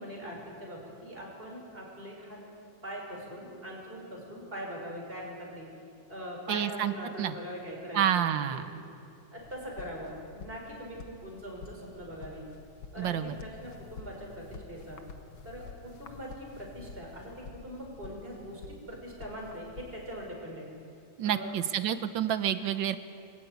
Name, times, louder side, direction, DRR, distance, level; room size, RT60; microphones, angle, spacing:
voice 1, 0.0-2.4 2.8-5.7 6.1-8.2 8.5-8.7 9.3-12.4 12.9-15.0 15.4-20.7 21.2-21.5, equal, 25° right, -1 dB, 6.0 m, -42 dB
voice 2, 6.5-6.9 7.2-7.3 7.9-8.7 13.0-13.4 21.2-23.0, right 10 dB, 70° right, 11 dB, 1.6 m, -28 dB
sound 1, 9.4-20.3, left 4 dB, 75° left, 2.0 m, -49 dB
24.0 x 15.5 x 9.5 m, 2.5 s
omnidirectional pair, 2.2 m